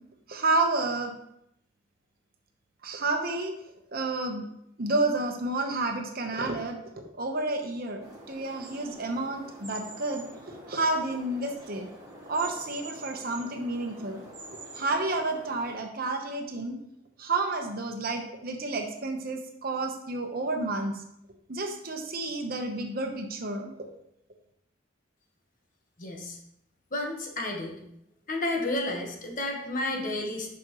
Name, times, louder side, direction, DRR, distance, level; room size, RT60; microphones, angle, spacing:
voice 1, 0.3-1.1 2.8-3.5 3.9-4.4 4.8-6.8 7.2-10.2 10.7-11.9 12.3-14.2 14.7-16.8 17.2-21.0 21.5-23.7, right 2 dB, 50° right, 4 dB, 1.0 m, -30 dB
sound 1, 8.0-15.7, right 2 dB, 20° right, 2.1 m, -45 dB
voice 2, 26.0-26.4 26.9-27.8 28.3-30.5, left 1 dB, 45° left, 1 dB, 1.4 m, -31 dB
10.0 x 6.1 x 3.1 m, 0.77 s
head